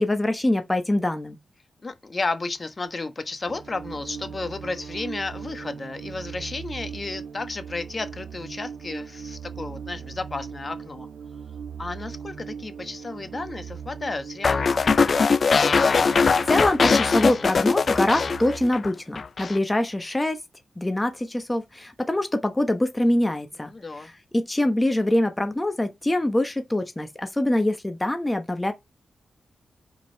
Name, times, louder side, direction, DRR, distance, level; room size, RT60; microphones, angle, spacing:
voice 1, 0.0-1.4 16.5-20.4 20.8-23.7 24.0-28.7, left 1 dB, 15° left, 1.0 m, -24 dB
voice 2, 1.8-11.1 11.8-15.2 23.6-24.1, left 3 dB, 40° left, 1.2 m, -33 dB
sound 1, 3.5-18.7, right 7 dB, 85° right, 1.0 m, -39 dB
sound 2, 14.4-18.9 19.2-19.6, left 5 dB, 55° left, 0.4 m, -21 dB
5.4 x 4.9 x 4.5 m
cardioid pair, 60°, 0 cm